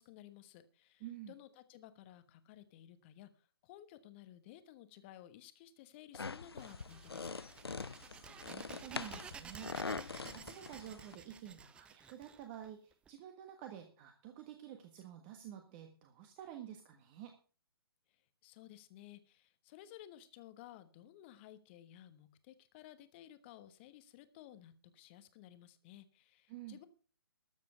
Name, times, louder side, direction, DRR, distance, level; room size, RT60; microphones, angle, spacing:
voice 1, 0.0-7.3 18.1-26.9, left 12 dB, 30° left, 12 dB, 1.2 m, -56 dB
voice 2, 1.0-1.3 8.1-17.3 26.5-26.8, right 10 dB, 25° right, 5 dB, 1.4 m, -50 dB
sound 1, 6.1-11.2, left 4 dB, 80° left, 0.6 m, -44 dB
sound 2, 6.6-13.1, right 6 dB, 10° right, 0.5 m, -53 dB
13.0 x 7.5 x 6.5 m, 0.38 s
figure-of-eight pair, 135°, 13 cm